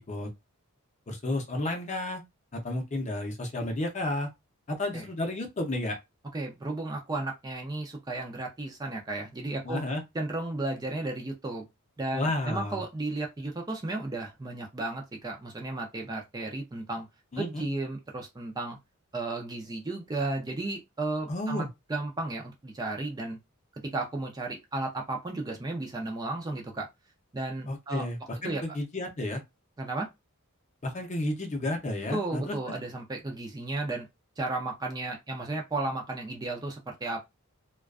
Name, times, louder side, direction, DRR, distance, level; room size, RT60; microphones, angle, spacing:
voice 1, 1.1-2.2 2.5-4.3 4.7-6.0 9.6-10.0 12.1-12.8 17.3-17.6 21.3-21.7 27.7-29.4 30.8-32.6, left 1 dB, 35° left, 0.6 m, -32 dB
voice 2, 6.3-9.8 10.1-11.7 12.0-17.1 17.4-18.8 19.1-21.6 21.9-23.4 23.8-26.9 27.3-28.1 28.4-28.6 29.8-30.1 32.1-34.1 34.4-37.2, right 2 dB, 20° right, 0.4 m, -34 dB
2.4 x 2.2 x 2.3 m
head